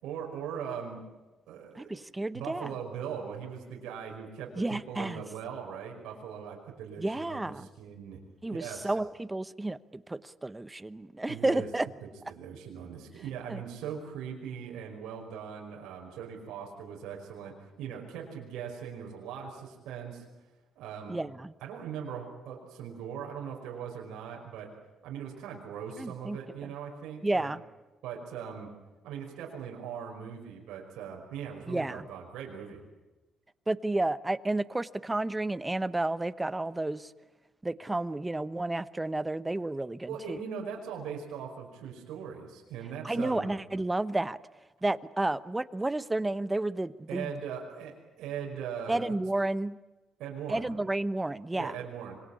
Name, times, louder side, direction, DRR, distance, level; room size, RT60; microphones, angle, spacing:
voice 1, 0.0-1.1 1.5-2.1 2.3-8.2 8.5-8.9 11.3-11.7 12.0-20.2 20.8-21.2 21.6-24.7 25.0-27.5 28.0-28.7 29.0-32.8 40.1-43.5 47.1-49.2 50.2-50.7 51.5-52.2, right 7 dB, 90° right, -1 dB, 5.3 m, -40 dB
voice 2, 1.7-2.7 4.6-5.2 7.0-7.7 8.4-11.9 13.5-13.6 21.1-21.5 26.0-26.4 27.2-27.6 31.7-32.1 33.7-37.1 37.6-40.4 43.0-44.4 44.8-47.3 48.9-49.8 50.5-51.7, right 2 dB, 15° right, 15 dB, 1.0 m, -31 dB
26.0 x 22.5 x 8.5 m, 1.1 s
cardioid pair, 90°, 0 cm